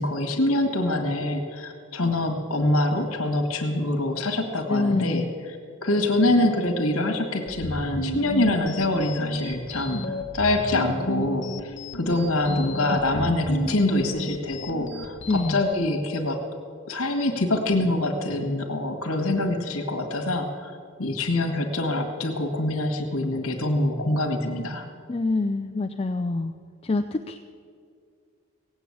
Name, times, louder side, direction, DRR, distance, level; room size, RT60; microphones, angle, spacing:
voice 1, 0.0-5.2 5.8-10.0 10.3-16.4 16.9-20.7 21.0-24.8, left 2 dB, 70° left, 3 dB, 1.7 m, -25 dB
voice 2, 4.7-5.3 12.5-12.6 12.9-13.3 15.3-15.6 25.1-26.5 26.8-27.4, left 3 dB, 25° left, 7 dB, 0.4 m, -26 dB
sound 1, 7.5-15.7, equal, 55° left, 1.1 m, -33 dB
17.5 x 8.2 x 8.4 m, 2.2 s
head